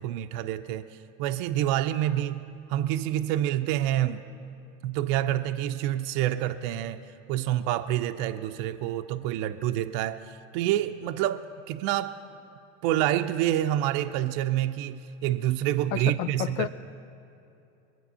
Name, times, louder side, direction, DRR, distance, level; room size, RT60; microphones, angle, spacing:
voice 1, 0.0-2.4 2.7-4.2 4.8-7.0 7.3-12.2 12.8-16.7, right 12 dB, 60° right, 7 dB, 0.6 m, -27 dB
voice 2, 15.9-16.7, left 12 dB, 65° left, 11 dB, 0.7 m, -30 dB
22.5 x 8.0 x 5.5 m, 2.8 s
hypercardioid pair, 85°, 38 cm